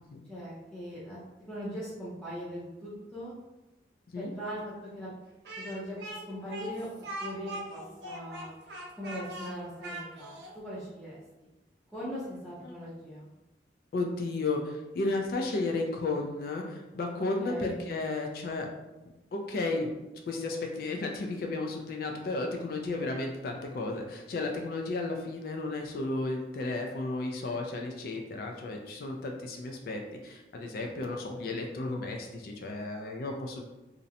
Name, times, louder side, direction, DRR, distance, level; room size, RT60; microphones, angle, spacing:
voice 1, 0.3-1.2 1.5-3.3 4.2-5.1 5.6-6.9 7.2-8.5 8.9-11.5 11.9-13.3 17.4-18.0, equal, 5° left, -10 dB, 0.5 m, -40 dB
Speech, 5.4-10.5, right 1 dB, 75° right, 0.5 m, -41 dB
voice 2, 13.9-18.7 19.3-20.0 20.3-33.7, left 2 dB, 55° left, 2 dB, 0.3 m, -33 dB
2.5 x 2.0 x 2.6 m, 1.0 s
head